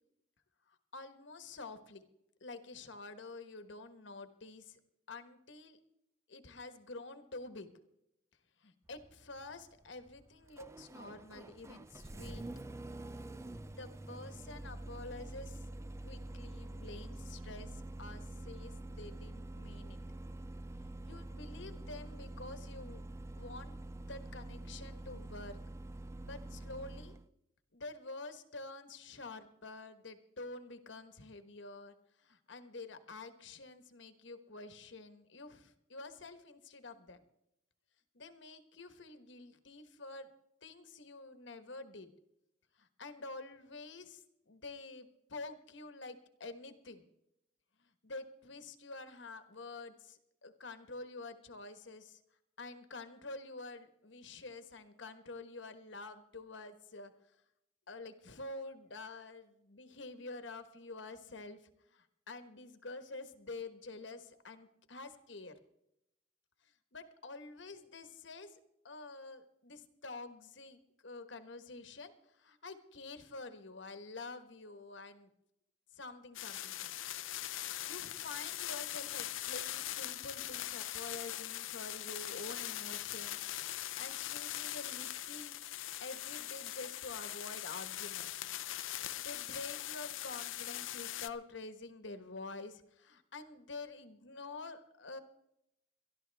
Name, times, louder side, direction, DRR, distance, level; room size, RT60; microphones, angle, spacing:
voice 1, 0.9-2.0 2.4-4.8 5.1-5.8 6.3-7.7 8.6-12.4 13.7-15.6 16.0-20.0 21.0-23.0 23.4-25.6 26.2-27.1 27.7-31.9 32.2-37.2 38.1-40.3 40.6-42.1 42.8-47.1 48.0-52.2 52.6-57.1 57.9-61.6 61.9-65.5 66.9-68.5 68.8-72.1 72.4-75.3 75.9-77.0 77.8-83.4 83.7-85.6 86.0-88.3 89.2-95.2, left 3 dB, 65° left, 9 dB, 1.3 m, -48 dB
Engine starting, 8.9-27.3, right 2 dB, 15° right, 0.4 m, -46 dB
sound 1, 76.3-91.3, left 13 dB, 85° left, 0.6 m, -41 dB
22.5 x 13.0 x 3.5 m, 0.81 s
head